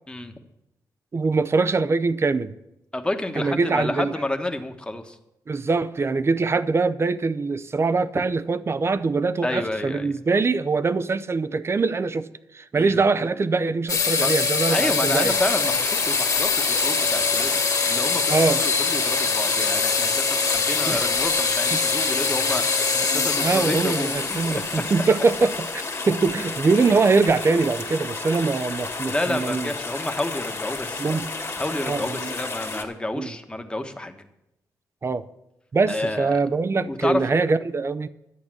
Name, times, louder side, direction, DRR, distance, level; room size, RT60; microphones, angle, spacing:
voice 1, 1.1-2.5 3.4-4.1 5.5-12.3 12.5-15.3 18.3-18.6 20.8-21.0 23.1-29.7 31.0-31.3 31.8-32.3 33.1-33.4 35.0-35.3 35.7-38.1, right 4 dB, 35° right, 0.6 m, -23 dB
voice 2, 2.9-5.2 9.4-10.1 12.8-13.0 14.2-17.5 17.8-18.3 18.6-24.8 29.1-34.3 35.9-36.4 36.9-37.4, left 1 dB, 15° left, 1.2 m, -30 dB
Angle Grinder On Metal, 13.9-27.3, left 5 dB, 50° left, 2.3 m, -24 dB
sound 1, 15.3-32.8, left 3 dB, 35° left, 1.8 m, -32 dB
11.0 x 8.3 x 6.1 m
cardioid pair, 75°, 7 cm